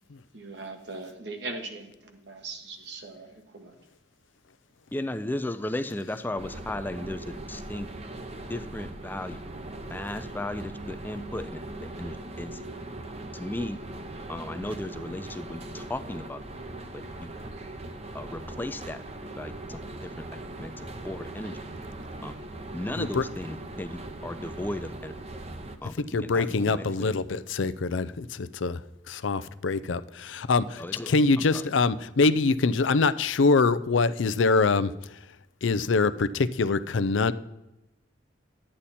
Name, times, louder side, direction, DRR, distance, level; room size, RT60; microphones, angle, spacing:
voice 1, 0.3-3.8, right 3 dB, 60° right, 4 dB, 1.5 m, -40 dB
voice 2, 4.9-7.9 8.5-9.4 9.9-11.5 12.0-12.6 13.3-13.8 14.3-16.4 16.9-17.3 18.1-19.0 19.4-21.6 22.2-22.3 22.7-25.1 25.8-25.9 26.2-27.1 30.8-31.6, left 1 dB, 10° left, 10 dB, 0.4 m, -35 dB
sound 1, 6.4-25.8, right 2 dB, 35° right, 0.8 m, -40 dB
voice 3, 26.1-35.4 35.6-37.3, left 4 dB, 85° left, 15 dB, 0.5 m, -24 dB
11.5 x 8.7 x 4.2 m, 0.96 s
head